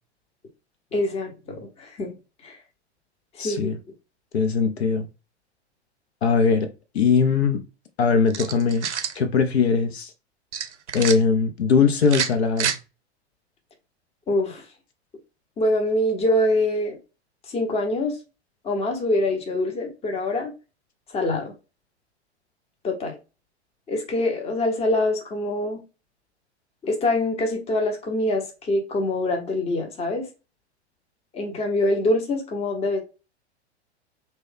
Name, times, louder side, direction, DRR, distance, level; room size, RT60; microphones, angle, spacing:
voice 1, 0.9-2.2 2.4-2.6 3.4-3.8 14.3-14.6 15.6-17.0 17.5-18.2 18.6-20.5 21.1-21.5 22.8-23.2 23.9-25.8 26.8-30.2 31.3-33.0, left 1 dB, 15° left, 0.8 m, -24 dB
voice 2, 3.4-3.8 4.3-5.1 6.2-6.7 6.9-7.6 8.0-8.9 9.1-10.1 10.9-12.7, left 5 dB, 70° left, 0.6 m, -20 dB
sound 1, 8.3-9.2 10.5-11.2 12.0-12.8, right 8 dB, 80° right, 0.6 m, -27 dB
3.0 x 2.2 x 3.5 m
figure-of-eight pair, 95°, 34 cm